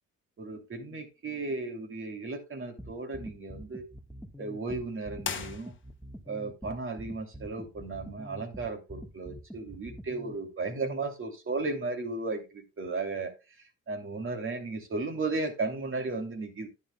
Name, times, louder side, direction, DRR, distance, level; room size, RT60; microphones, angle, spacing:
voice 1, 0.4-3.8 4.4-5.7 6.3-13.3 13.9-16.7, right 3 dB, 45° right, 4 dB, 2.8 m, -35 dB
sound 1, 2.8-10.4, equal, ahead, 1.4 m, -45 dB
sound 2, 5.2-6.2, left 7 dB, 40° left, 1.4 m, -38 dB
11.0 x 10.0 x 2.3 m, 0.27 s
cardioid pair, 90°, 30 cm